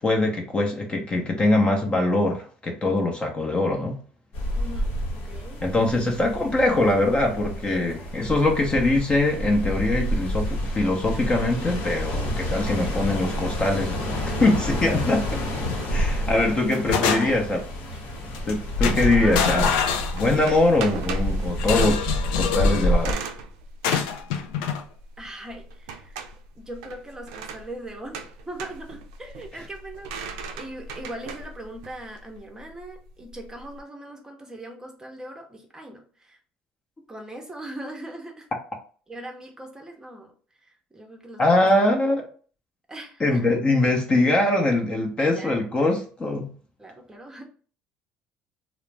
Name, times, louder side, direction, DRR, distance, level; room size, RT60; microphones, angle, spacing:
voice 1, 0.0-4.0 5.6-14.0 14.4-15.4 15.9-17.6 18.5-19.7 20.1-23.2 41.4-42.2 43.2-46.5, left 2 dB, 30° left, 0.7 m, -22 dB
sound 1, 4.3-23.1, equal, 65° left, 0.8 m, -28 dB
voice 2, 4.5-5.6 7.6-8.3 12.8-13.4 15.8-15.9 16.3-17.4 17.9-18.0 19.1-19.7 25.2-26.2 26.5-36.4 37.1-38.5 39.1-40.3 40.6-41.7 42.9-43.4 45.2-45.6 46.8-47.4, right 1 dB, 15° right, 0.6 m, -40 dB
sound 2, 15.6-16.1 16.4-17.6 18.3-18.5 18.8-20.7 21.6-22.9 23.8-24.8, left 7 dB, 85° left, 0.3 m, -26 dB
sound 3, 19.3-33.8, right 5 dB, 85° right, 0.4 m, -39 dB
2.4 x 2.0 x 3.2 m
supercardioid pair, 85°, 4 cm